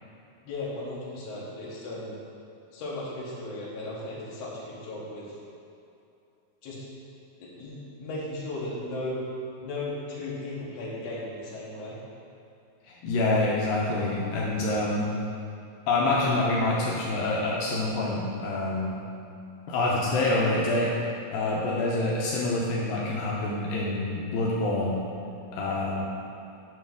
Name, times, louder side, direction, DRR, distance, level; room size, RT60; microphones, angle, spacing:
voice 1, 0.4-2.2 2.7-5.4 6.6-6.8 7.4-9.2 9.6-12.0, left 2 dB, 55° left, -6 dB, 2.1 m, -36 dB
voice 2, 12.9-15.1 15.9-18.9 19.7-20.9 21.3-25.0 25.5-26.1, left 2 dB, 80° left, -5 dB, 2.4 m, -26 dB
9.3 x 3.1 x 6.1 m, 2.7 s
omnidirectional pair, 4.3 m